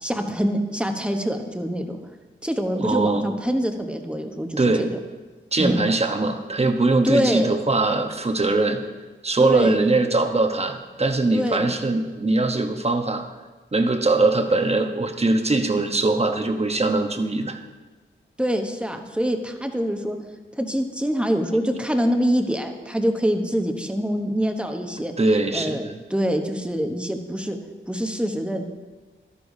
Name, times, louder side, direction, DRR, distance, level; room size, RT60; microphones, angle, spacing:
voice 1, 0.0-2.0 2.4-4.9 5.6-5.8 7.0-7.6 9.4-9.9 11.3-11.7 18.4-20.2 20.6-25.1 25.5-27.6 27.9-28.6, equal, 5° right, 4 dB, 1.0 m, -25 dB
voice 2, 2.7-3.3 4.6-4.9 5.5-8.8 9.2-13.2 13.7-17.6 25.2-25.9, right 2 dB, 30° right, 5 dB, 1.0 m, -21 dB
12.0 x 9.8 x 2.7 m, 1.3 s
cardioid pair, 55°, 21 cm